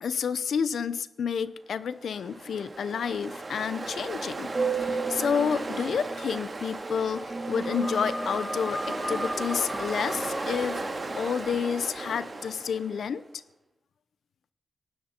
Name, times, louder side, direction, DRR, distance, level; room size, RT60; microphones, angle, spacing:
voice 1, 0.0-4.5 4.8-10.8 11.1-13.2, left 7 dB, 80° left, 15 dB, 0.7 m, -30 dB
Ocean, 2.0-13.1, right 3 dB, 30° right, 2.2 m, -34 dB
sound 1, 7.4-11.5, left 1 dB, 15° left, 3.8 m, -36 dB
18.0 x 16.5 x 4.5 m, 0.86 s
wide cardioid pair, 125°, 0 cm